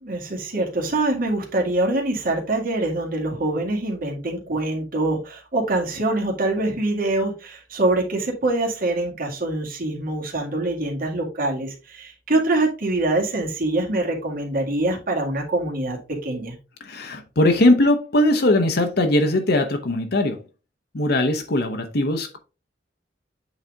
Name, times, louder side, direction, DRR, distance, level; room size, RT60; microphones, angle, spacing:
voice 1, 0.0-16.5, right 2 dB, 55° right, 2.1 m, -24 dB
voice 2, 16.8-20.4 20.9-22.4, left 1 dB, 60° left, 0.9 m, -20 dB
8.1 x 4.0 x 3.5 m
head